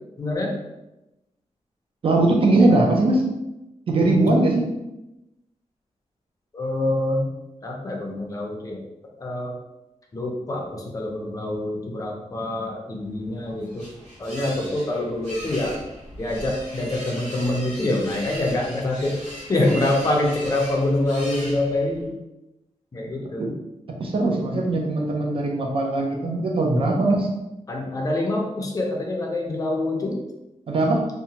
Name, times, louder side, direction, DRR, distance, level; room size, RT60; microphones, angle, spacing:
voice 1, 0.2-0.5 6.5-7.3 7.6-8.8 9.2-9.6 10.1-13.9 14.2-15.7 16.2-19.2 19.5-22.1 22.9-23.5 27.7-30.2, left 1 dB, 30° left, 0 dB, 0.5 m, -25 dB
voice 2, 2.0-3.3 3.9-4.7 23.4-23.5 24.0-27.3 30.7-31.1, right 2 dB, 45° right, 0 dB, 0.4 m, -20 dB
sound 1, 13.2-22.1, equal, 80° right, 1.0 m, -39 dB
2.8 x 2.1 x 2.7 m, 0.95 s
wide cardioid pair, 160°, 12 cm